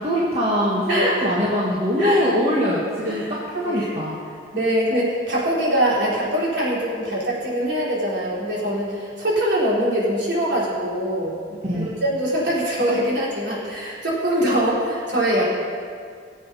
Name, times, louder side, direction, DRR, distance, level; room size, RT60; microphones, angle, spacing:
voice 1, 0.0-4.2 11.7-11.9, equal, 35° right, -5 dB, 1.6 m, -22 dB
voice 2, 0.9-1.3 2.0-2.2 3.0-3.3 3.6-3.9 4.5-11.4 11.7-15.4, right 1 dB, 65° right, -7 dB, 4.3 m, -23 dB
19.0 x 7.9 x 5.6 m, 2.2 s
head